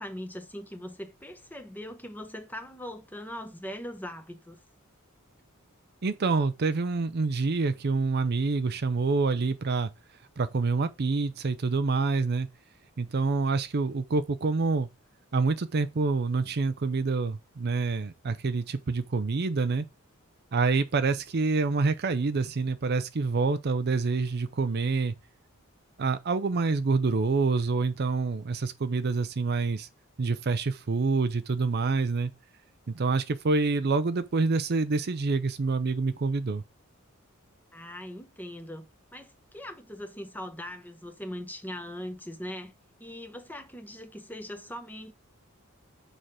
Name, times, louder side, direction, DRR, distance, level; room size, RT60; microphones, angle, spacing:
voice 1, 0.0-4.6 37.7-42.7 43.0-45.1, equal, 10° left, 1.0 m, -40 dB
voice 2, 6.0-9.9 10.4-12.5 13.0-14.9 15.3-19.9 20.5-25.1 26.0-29.9 30.2-32.3 32.9-36.6, right 4 dB, 50° right, 0.5 m, -27 dB
6.5 x 4.5 x 4.9 m
head